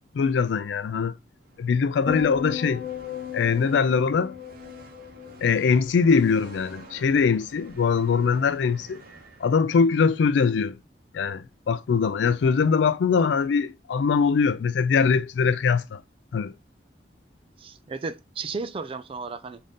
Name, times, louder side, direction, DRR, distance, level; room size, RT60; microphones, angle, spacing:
voice 1, 0.1-1.1 1.6-2.9 3.3-4.3 5.4-9.0 9.4-10.8 11.1-16.0 16.3-16.5, left 5 dB, 75° left, 0.3 m, -22 dB
sound 1, 1.4-10.0, right 2 dB, 55° right, 0.8 m, -49 dB
sound 2, 2.1-6.4 6.7-7.2, left 8 dB, 50° left, 1.1 m, -36 dB
voice 2, 17.6-19.6, right 4 dB, 30° right, 0.4 m, -34 dB
3.7 x 2.7 x 3.5 m
head